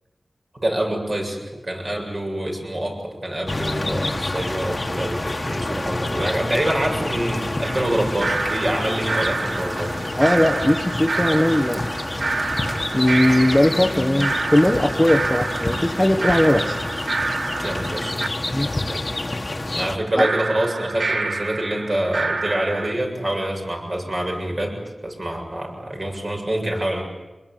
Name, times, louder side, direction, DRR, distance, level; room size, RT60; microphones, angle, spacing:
voice 1, 0.5-10.0 13.7-13.8 17.6-19.1 19.4-27.0, right 1 dB, 40° right, 1 dB, 7.6 m, -26 dB
sound 1, 3.5-20.0, left 2 dB, 35° left, 1.8 m, -28 dB
sound 2, 7.6-18.3 20.2-22.9, right 3 dB, 80° right, 1.6 m, -28 dB
voice 2, 10.2-11.8 12.4-12.5 12.9-16.8 18.5-18.7 20.2-20.3, left 1 dB, 10° left, 5 dB, 1.3 m, -19 dB
25.5 x 21.5 x 9.4 m, 1.1 s
wide cardioid pair, 75°, 0 cm